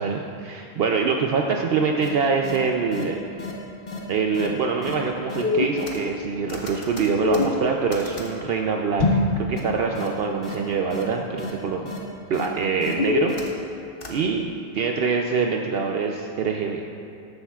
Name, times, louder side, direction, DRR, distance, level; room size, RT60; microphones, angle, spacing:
voice 1, 0.0-3.2 4.1-11.9 12.3-13.3 14.1-16.8, right 5 dB, 65° right, 2 dB, 0.8 m, -24 dB
sound 1, 2.0-2.1 2.4-2.6 2.9-3.0 3.4-3.5 3.9-4.0 4.3-4.5 4.8-4.9 5.3-6.2 6.5-8.3 9.0-9.3 9.6-9.7 10.0-10.1 10.4-10.6 10.9-11.0 11.4-11.5 11.9-12.0 12.3-12.5 12.8-13.7 14.0-14.1, left 3 dB, 55° left, 1.3 m, -26 dB
13.5 x 9.9 x 2.4 m, 2.6 s
omnidirectional pair, 1.1 m